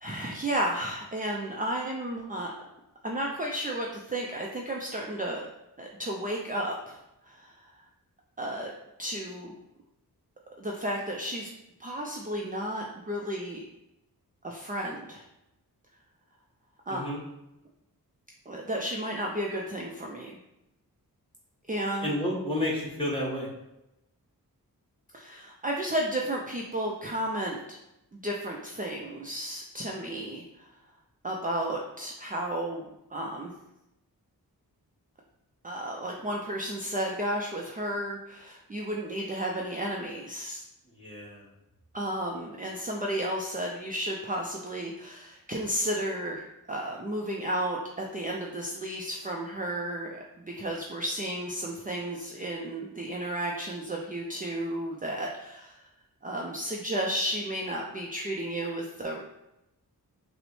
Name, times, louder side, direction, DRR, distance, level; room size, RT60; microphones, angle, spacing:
voice 1, 0.0-2.5 3.0-5.5 5.8-7.8 8.4-8.7 9.0-9.6 10.6-11.5 11.8-13.6 14.4-15.2 16.9-17.0 18.5-20.3 21.7-22.1 25.1-27.8 28.1-30.7 31.2-33.5 35.6-40.6 41.9-55.9 56.2-59.2, right 1 dB, 25° right, -1 dB, 0.4 m, -33 dB
voice 2, 16.9-17.2 22.0-23.5 40.9-41.4, left 1 dB, 15° left, -4 dB, 1.1 m, -31 dB
5.8 x 2.1 x 3.1 m, 0.89 s
wide cardioid pair, 80°, 37 cm